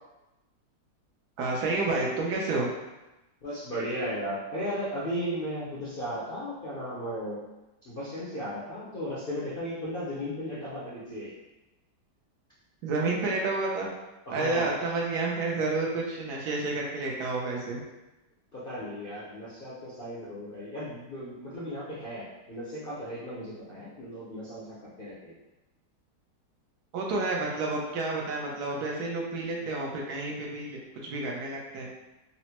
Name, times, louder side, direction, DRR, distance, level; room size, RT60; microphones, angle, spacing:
voice 1, 1.4-2.7 12.8-13.9 14.3-17.8 26.9-31.9, right 3 dB, 70° right, -2 dB, 1.1 m, -30 dB
voice 2, 3.4-7.4 7.8-11.4 14.3-14.8 18.5-25.3, equal, 55° left, -9 dB, 0.6 m, -35 dB
4.0 x 2.1 x 2.8 m, 1.0 s
omnidirectional pair, 1.9 m